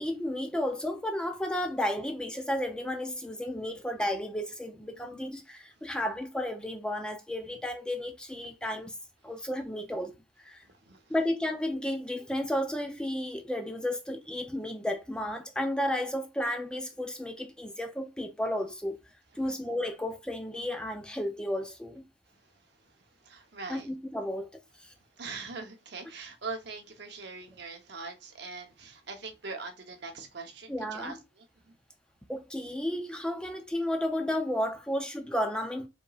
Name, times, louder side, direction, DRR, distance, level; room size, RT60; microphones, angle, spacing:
voice 1, 0.0-9.0 9.2-10.1 10.4-10.6 11.1-19.0 19.4-22.0 23.7-24.5 24.8-24.9 30.7-31.2 32.3-35.9, left 1 dB, 5° left, 0.5 m, -33 dB
voice 2, 10.8-11.1 19.4-19.5 23.2-23.9 25.2-31.4, right 4 dB, 55° right, 0.9 m, -42 dB
5.3 x 3.1 x 2.3 m
head